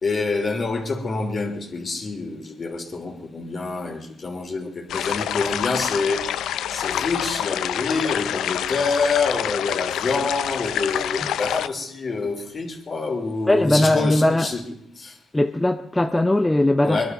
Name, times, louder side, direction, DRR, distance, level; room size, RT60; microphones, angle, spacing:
voice 1, 0.0-6.3 6.7-14.6 15.0-15.2 16.8-17.1, left 4 dB, 40° left, 3.1 m, -26 dB
sound 1, 4.9-11.7, left 10 dB, 80° left, 0.5 m, -27 dB
voice 2, 13.5-14.5 15.3-17.1, left 1 dB, 10° left, 0.7 m, -19 dB
22.5 x 11.5 x 5.4 m
cardioid pair, 90°, 0 cm